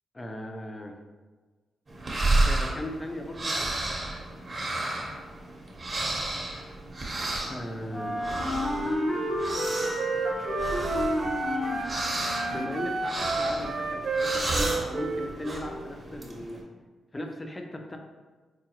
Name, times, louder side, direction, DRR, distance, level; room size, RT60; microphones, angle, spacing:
voice 1, 0.1-1.0 2.4-3.8 7.5-8.2 12.5-16.6 17.1-18.0, left 1 dB, 25° left, 3 dB, 0.5 m, -37 dB
sound 1, 1.9-16.6, right 2 dB, 40° right, 0.9 m, -32 dB
Wind instrument woodwind instrument, 7.9-12.9, left 1 dB, 40° left, 0.9 m, -31 dB
Wind instrument woodwind instrument 2, 8.7-11.9 12.3-15.7, right 3 dB, 60° right, 0.4 m, -32 dB
4.7 x 2.2 x 2.9 m, 1.4 s
cardioid pair, 70°, 0 cm